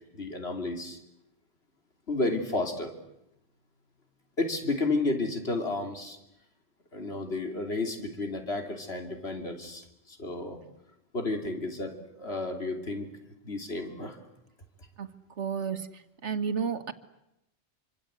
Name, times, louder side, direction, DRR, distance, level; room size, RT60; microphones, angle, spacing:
voice 1, 0.1-1.0 2.1-2.9 4.4-6.2 6.9-10.6 11.1-13.1 13.4-14.2, left 2 dB, 60° left, 4 dB, 3.4 m, -32 dB
voice 2, 15.4-15.9 16.2-16.9, right 6 dB, 80° right, 10 dB, 1.8 m, -31 dB
26.5 x 25.5 x 8.1 m, 0.85 s
omnidirectional pair, 1.2 m